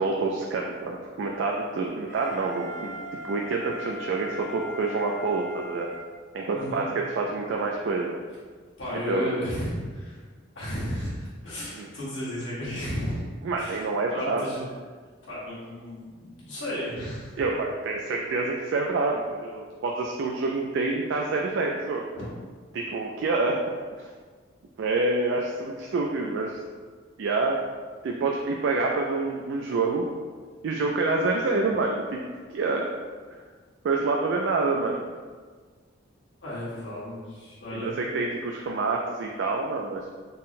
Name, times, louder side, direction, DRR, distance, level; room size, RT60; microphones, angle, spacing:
voice 1, 0.0-3.0 3.2-5.9 6.3-8.2 9.1-9.3 11.7-11.9 13.4-14.5 17.4-22.1 22.7-23.6 24.0-24.1 24.8-26.6 27.2-27.6 28.0-30.1 30.6-32.2 32.5-32.9 33.3-33.4 33.8-35.1 37.7-40.1, right 3 dB, 60° right, 0 dB, 0.3 m, -27 dB
Wind instrument woodwind instrument, 2.1-6.8, left 1 dB, 15° left, 0.9 m, -40 dB
voice 2, 6.5-6.8 8.8-10.2 10.5-13.2 13.6-13.8 14.1-14.6 15.2-17.4 22.1-22.3 36.4-37.9, equal, 60° left, -8 dB, 1.4 m, -34 dB
3.8 x 2.1 x 4.1 m, 1.5 s
head